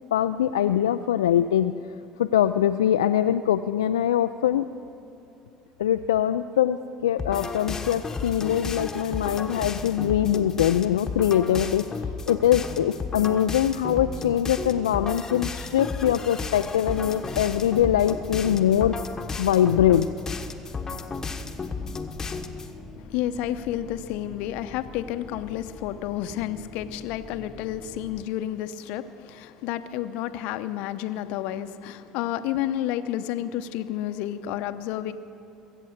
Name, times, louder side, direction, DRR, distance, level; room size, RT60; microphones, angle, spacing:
voice 1, 0.1-1.7 2.2-4.7 5.8-11.9 12.3-19.0 19.4-20.1, left 10 dB, 85° left, 8 dB, 0.3 m, -23 dB
sound 1, 7.2-22.7, left 4 dB, 25° left, 1.2 m, -33 dB
sound 2, 16.6-28.3, left 2 dB, ahead, 1.5 m, -45 dB
voice 2, 22.9-35.1, left 12 dB, 65° left, 11 dB, 0.7 m, -30 dB
23.0 x 8.5 x 6.5 m, 2.9 s
hypercardioid pair, 70°, 2 cm